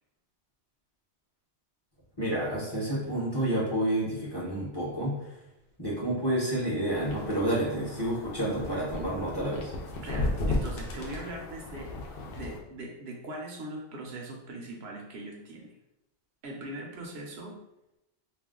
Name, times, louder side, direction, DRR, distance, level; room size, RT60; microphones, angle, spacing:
voice 1, 2.2-5.1 5.8-9.7, right 1 dB, 25° left, -7 dB, 0.7 m, -29 dB
sound 1, 6.9-12.6, left 2 dB, 65° left, 0.7 m, -35 dB
voice 2, 10.0-11.9 12.3-15.7 16.4-17.6, right 1 dB, 70° right, 0 dB, 0.8 m, -40 dB
2.4 x 2.2 x 3.6 m, 0.89 s
omnidirectional pair, 1.1 m